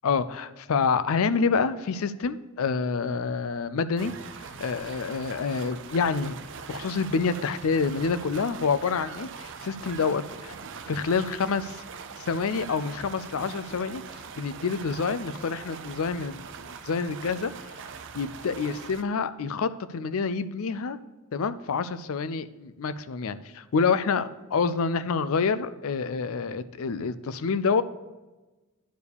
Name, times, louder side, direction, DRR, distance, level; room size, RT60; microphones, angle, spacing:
voice 1, 0.0-4.1 4.4-6.3 6.7-10.5 10.9-11.8 12.3-14.0 14.4-17.5 18.1-21.0 21.3-27.8, left 5 dB, 70° left, 13 dB, 0.5 m, -27 dB
sound 1, 4.0-19.0, right 6 dB, 60° right, 0.6 m, -42 dB
10.0 x 4.7 x 6.8 m, 1.1 s
head